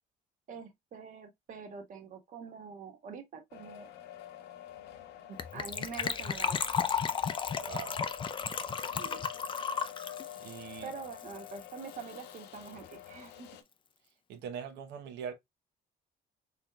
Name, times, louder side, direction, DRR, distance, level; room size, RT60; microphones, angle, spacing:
voice 1, 0.5-3.9 5.3-6.7 8.9-9.2 10.8-13.5, right 6 dB, 50° right, 1.3 m, -45 dB
sound 1, 3.5-13.6, left 12 dB, 80° left, 0.7 m, -48 dB
Gurgling / Trickle dribble / Fill (with liquid), 5.4-11.6 11.9-12.0 12.2-12.4 12.7-12.8, left 6 dB, 30° left, 0.5 m, -34 dB
voice 2, 7.6-8.0 8.4-8.7 10.4-10.9 14.3-15.3, right 7 dB, 85° right, 0.8 m, -42 dB
4.1 x 3.4 x 2.3 m
cardioid pair, 110°, 17 cm